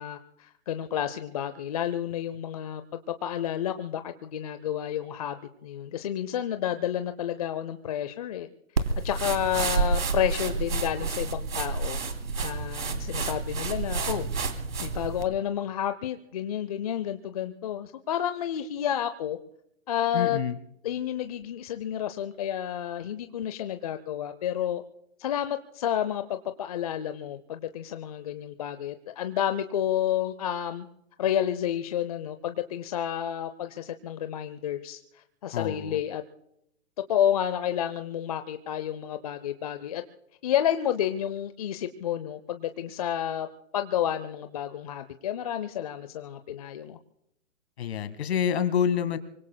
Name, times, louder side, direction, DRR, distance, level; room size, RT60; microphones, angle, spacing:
voice 1, 0.0-8.5 8.8-12.0 12.4-14.3 14.8-19.4 19.9-20.4 20.8-24.8 25.2-30.9 31.2-36.2 37.1-40.0 40.4-43.5 43.7-47.0, left 10 dB, 30° left, 10 dB, 0.6 m, -30 dB
sound 1, 8.8-15.3, right 4 dB, 85° right, 3.0 m, -29 dB
voice 2, 20.1-20.6 35.5-36.0 47.8-49.2, left 8 dB, 50° left, 11 dB, 1.9 m, -27 dB
25.0 x 24.5 x 2.2 m, 0.78 s
hypercardioid pair, 150°, 40 cm